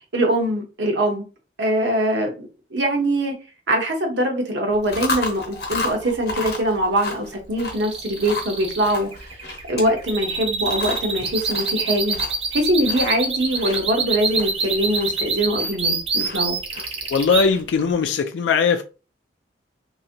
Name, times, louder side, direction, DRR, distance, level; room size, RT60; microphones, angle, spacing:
voice 1, 0.1-1.3 1.6-3.4 3.7-9.3 9.7-12.2 12.5-16.6, right 1 dB, 85° right, 0.9 m, -22 dB
Chewing mastication, 4.7-17.9, left 3 dB, 60° left, 0.8 m, -34 dB
sound 1, 7.7-17.5, right 4 dB, 35° right, 0.5 m, -25 dB
voice 2, 17.1-18.8, left 5 dB, 85° left, 0.3 m, -19 dB
3.0 x 2.8 x 2.5 m
head